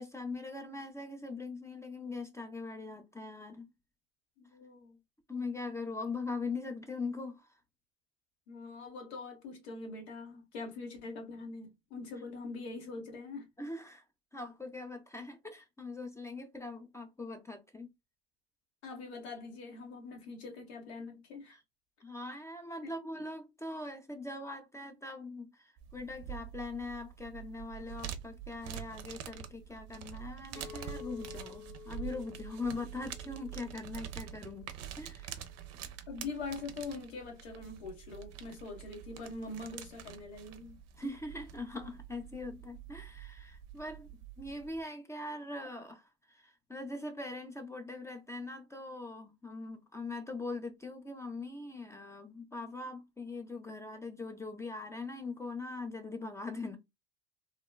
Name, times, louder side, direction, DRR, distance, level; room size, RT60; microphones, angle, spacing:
voice 1, 0.0-3.7 5.3-7.6 13.6-14.0 14.3-17.9 21.5-21.6 22.0-34.7 35.0-35.4 41.0-56.8, left 3 dB, 10° left, 0.4 m, -41 dB
voice 2, 4.4-5.0 8.5-13.5 18.8-21.6 22.8-22.9 36.1-40.8, left 3 dB, 90° left, 1.2 m, -43 dB
sound 1, 25.8-44.8, right 10 dB, 55° right, 0.5 m, -46 dB
Chink clink, 30.6-34.8, left 9 dB, 65° left, 0.6 m, -51 dB
3.0 x 2.1 x 2.2 m
supercardioid pair, 95°, 32 cm